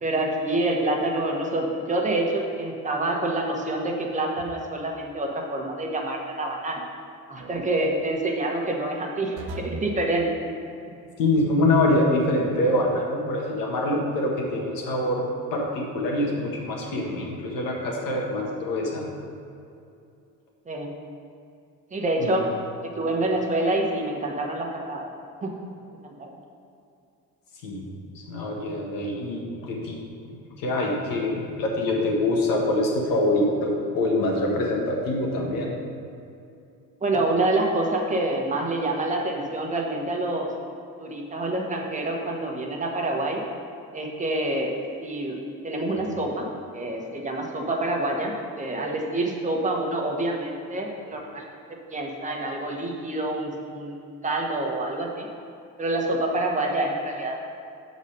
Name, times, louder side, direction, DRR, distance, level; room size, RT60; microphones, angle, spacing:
voice 1, 0.0-6.8 7.3-10.3 20.7-20.9 21.9-22.5 22.8-25.1 25.4-25.5 26.0-26.3 37.0-40.5 41.0-43.4 43.9-44.7 45.0-45.4 45.6-46.5 46.7-51.5 51.9-53.9 54.2-55.3 55.8-57.3, right 2 dB, 20° right, 0 dB, 1.1 m, -27 dB
sound 1, 4.4-4.9 7.4-7.9 9.4-9.9 12.4-13.1, right 2 dB, 90° right, 0.9 m, -39 dB
voice 2, 11.2-15.2 15.5-19.1 22.2-22.4 27.6-27.9 28.1-30.0 30.3-35.7, left 1 dB, 70° left, -1 dB, 1.6 m, -25 dB
7.0 x 4.1 x 6.6 m, 2.6 s
cardioid pair, 125°, 35 cm